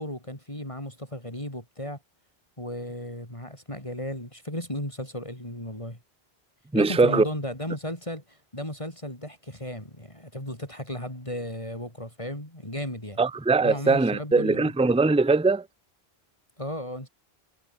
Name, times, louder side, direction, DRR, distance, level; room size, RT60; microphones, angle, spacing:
voice 1, 0.0-2.0 2.6-6.0 6.7-13.2 13.6-14.7 16.6-17.1, left 1 dB, 30° left, 5.9 m, -35 dB
voice 2, 6.7-7.2 13.2-15.6, right 3 dB, 5° right, 0.7 m, -21 dB
omnidirectional pair, 1.1 m